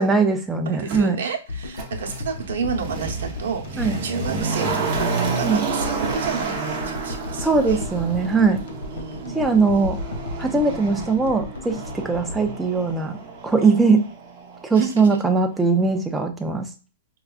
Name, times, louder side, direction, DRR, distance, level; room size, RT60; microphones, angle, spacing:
voice 1, 0.0-1.2 3.8-4.0 5.4-5.6 7.4-8.6 9.3-10.0 10.4-13.2 13.4-14.0 14.6-16.7, right 4 dB, 5° right, 3 dB, 0.4 m, -20 dB
voice 2, 0.7-4.7 4.9-7.9 8.9-9.4 13.6-13.8 14.7-14.9, right 6 dB, 70° right, 2 dB, 0.8 m, -31 dB
Motor vehicle (road), 0.9-1.0 1.7-14.7 15.0-15.1, right 4 dB, 25° right, 0.8 m, -30 dB
sound 1, 1.5-13.8, left 2 dB, 70° left, 0.7 m, -35 dB
4.7 x 2.2 x 2.4 m, 0.33 s
hypercardioid pair, 175°, 0 cm